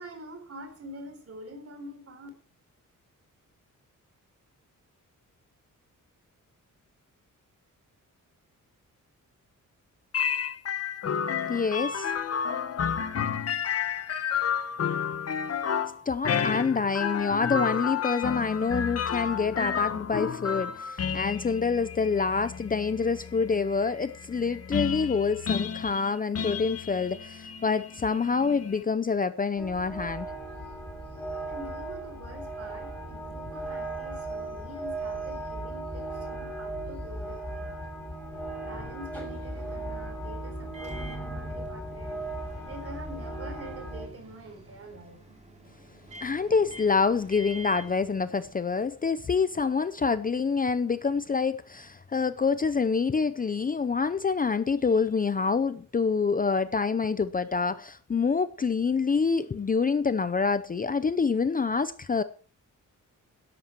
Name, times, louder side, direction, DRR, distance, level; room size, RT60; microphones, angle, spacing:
voice 1, 0.0-2.3 31.4-42.2 42.6-45.2, right 1 dB, 45° right, 4.0 m, -46 dB
sound 1, 10.1-28.8, left 7 dB, 50° left, 1.1 m, -31 dB
voice 2, 11.5-12.1 16.1-30.3 46.2-62.2, left 5 dB, 25° left, 0.6 m, -27 dB
sound 2, 29.6-44.1, right 1 dB, 5° left, 6.6 m, -37 dB
Microwave oven, 40.7-48.9, right 1 dB, 20° right, 3.3 m, -46 dB
13.0 x 11.0 x 4.6 m
wide cardioid pair, 165°, 32 cm